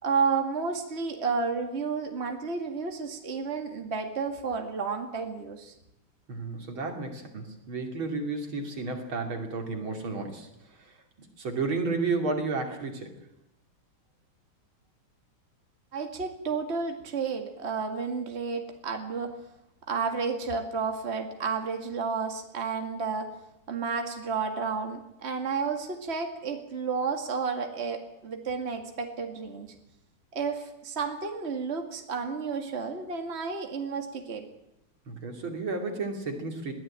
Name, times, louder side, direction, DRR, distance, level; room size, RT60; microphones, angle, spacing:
voice 1, 0.0-5.7 15.9-19.3 19.9-23.3 23.7-29.7 30.3-34.5, right 5 dB, 30° right, 4 dB, 2.2 m, -31 dB
voice 2, 6.3-11.0 11.4-13.1 35.1-36.7, right 3 dB, 70° right, 3 dB, 3.6 m, -32 dB
21.5 x 15.0 x 8.8 m, 0.85 s
omnidirectional pair, 2.3 m